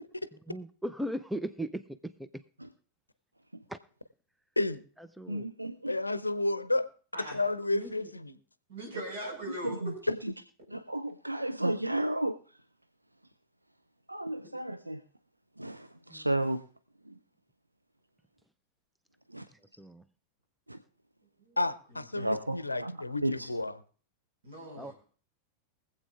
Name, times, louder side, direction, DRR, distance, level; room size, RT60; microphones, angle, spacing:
voice 1, 0.5-2.4 3.7-3.8 5.2-5.5 16.1-16.3 19.8-20.0 24.8-24.9, right 1 dB, 5° right, 13 dB, 0.4 m, -37 dB
voice 2, 5.3-5.9 9.6-10.3 10.7-12.4 14.1-15.0 15.6-16.6 17.1-17.2 19.3-19.5 20.7-20.8 22.2-22.9 23.2-23.5, right 1 dB, 85° right, 8 dB, 0.4 m, -33 dB
voice 3, 5.9-6.9 7.3-8.3 10.7-10.8 21.6-23.7, left 2 dB, 85° left, 13 dB, 0.6 m, -31 dB
voice 4, 7.7-8.1 8.7-9.9 14.4-14.5 21.4-21.6 24.4-24.9, right 1 dB, 60° right, 0 dB, 5.2 m, -40 dB
23.5 x 7.9 x 2.4 m, 0.43 s
figure-of-eight pair, 90°, 0 cm